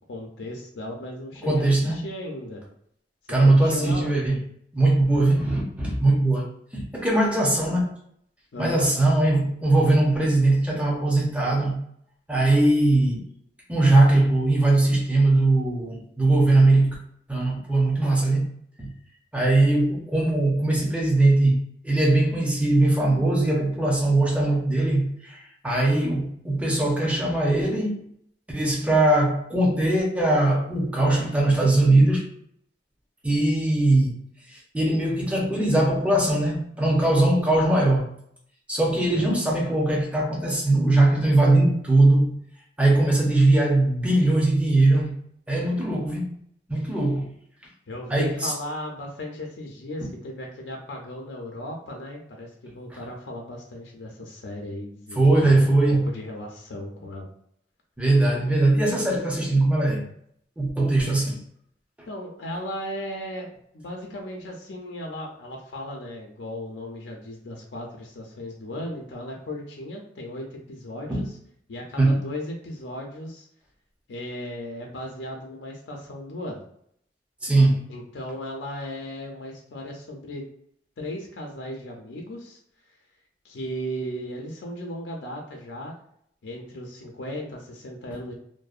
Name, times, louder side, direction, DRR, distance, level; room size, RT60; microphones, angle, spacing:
voice 1, 0.1-2.6 3.4-4.1 8.5-8.9 39.1-39.3 47.9-55.6 55.9-57.3 62.1-71.4 71.7-73.5 74.1-76.6 77.9-80.5 81.0-82.6 83.4-85.9 86.4-88.3, left 1 dB, 85° left, 0 dB, 0.5 m, -36 dB
voice 2, 1.4-2.0 3.3-4.4 4.7-6.4 6.7-7.9 8.6-11.8 12.3-13.2 13.7-16.9 17.3-18.5 18.8-18.9 19.3-28.0 28.5-32.2 33.2-34.2 34.7-38.1 38.7-42.3 42.8-45.2 45.5-46.3 46.7-47.3 48.1-48.5 55.2-56.1 58.0-60.0 60.6-61.4 71.1-71.2 72.0-72.2 77.4-77.8, right 2 dB, 5° right, -2 dB, 0.5 m, -20 dB
2.6 x 2.0 x 2.4 m, 0.69 s
head